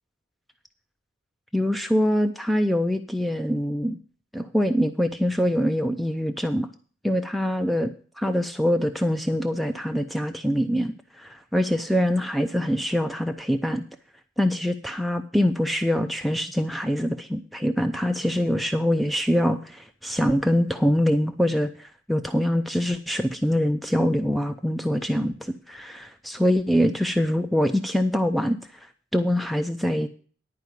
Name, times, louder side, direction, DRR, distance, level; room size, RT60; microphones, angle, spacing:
voice 1, 1.5-4.0 4.3-6.7 7.0-7.9 8.2-13.8 14.4-30.1, equal, ahead, 7 dB, 0.5 m, -24 dB
11.0 x 4.8 x 8.2 m, 0.41 s
head